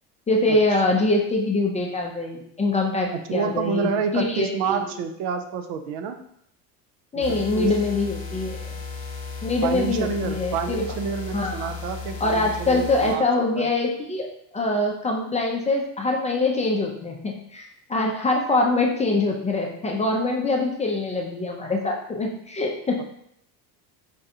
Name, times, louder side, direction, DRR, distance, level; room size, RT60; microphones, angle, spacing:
voice 1, 0.3-4.9 7.1-8.7 9.4-10.8 11.3-11.7 12.2-14.3 14.5-17.6 17.9-23.0, left 2 dB, 15° left, 0 dB, 0.5 m, -24 dB
voice 2, 3.1-6.2 7.3-7.8 9.6-13.7 23.0-23.1, right 6 dB, 65° right, 7 dB, 0.6 m, -28 dB
sound 1, 7.2-13.2, left 4 dB, 35° left, 1.1 m, -35 dB
5.2 x 2.3 x 2.8 m, 0.70 s
supercardioid pair, 100°, 44 cm